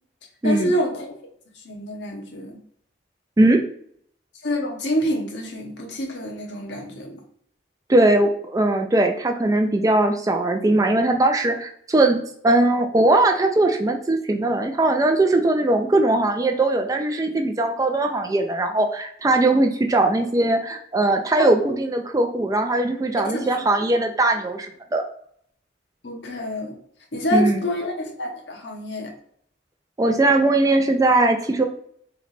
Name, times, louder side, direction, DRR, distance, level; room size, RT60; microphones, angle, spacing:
voice 1, 0.4-1.1 1.6-2.6 4.4-7.2 23.3-23.6 26.0-26.8 27.1-29.1, equal, 75° left, 1 dB, 0.9 m, -27 dB
voice 2, 7.9-12.2 12.4-25.0 27.3-27.6 30.0-31.7, right 2 dB, 20° right, 5 dB, 0.3 m, -20 dB
3.2 x 3.0 x 4.0 m, 0.65 s
head